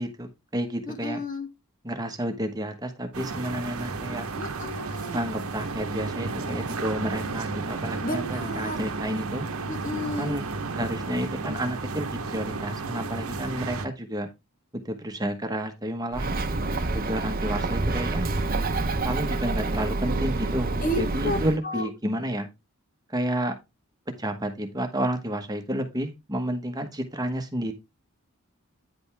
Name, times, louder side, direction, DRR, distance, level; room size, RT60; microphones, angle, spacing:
voice 1, 0.0-1.2 1.8-4.3 5.1-9.5 10.2-10.5 10.7-14.3 14.7-16.3 16.9-18.3 19.0-22.5 23.1-23.6 24.2-27.7, right 1 dB, 15° right, 1.1 m, -30 dB
voice 2, 0.9-1.5 4.4-5.2 8.0-8.8 9.7-10.4 20.8-21.4 21.6-21.9, left 1 dB, 40° left, 1.2 m, -31 dB
sound 1, 3.1-13.9, right 3 dB, 75° right, 1.0 m, -33 dB
Bird, 16.1-21.6, right 2 dB, 40° right, 0.8 m, -27 dB
9.7 x 5.2 x 3.4 m
head